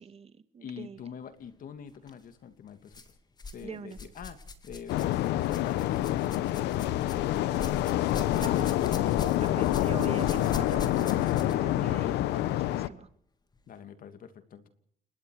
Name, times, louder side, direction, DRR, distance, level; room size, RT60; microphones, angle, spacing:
voice 1, 0.0-1.0 3.6-4.0 8.4-8.7 9.4-13.1, right 6 dB, 35° right, 12 dB, 2.1 m, -43 dB
voice 2, 0.6-3.2 3.5-4.4 4.6-8.7 13.7-14.7, left 7 dB, 55° left, 10 dB, 2.8 m, -46 dB
sound 1, 1.9-2.1 2.9-3.6 3.9-11.7 12.6-12.7 13.5-13.6, left 3 dB, 25° left, 2.7 m, -42 dB
sound 2, 4.9-12.9, left 14 dB, 85° left, 1.2 m, -27 dB
28.5 x 21.5 x 5.0 m, 0.64 s
cardioid pair, 110°, 17 cm